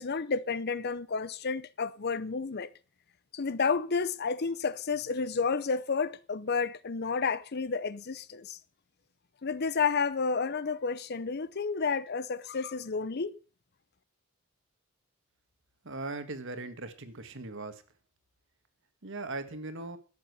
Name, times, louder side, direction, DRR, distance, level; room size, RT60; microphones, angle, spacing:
voice 1, 0.0-2.7 3.3-8.6 9.4-13.4, left 5 dB, 50° left, 0.6 m, -31 dB
voice 2, 15.8-17.8 19.0-20.0, right 2 dB, 60° right, 1.7 m, -39 dB
12.0 x 7.6 x 8.1 m
head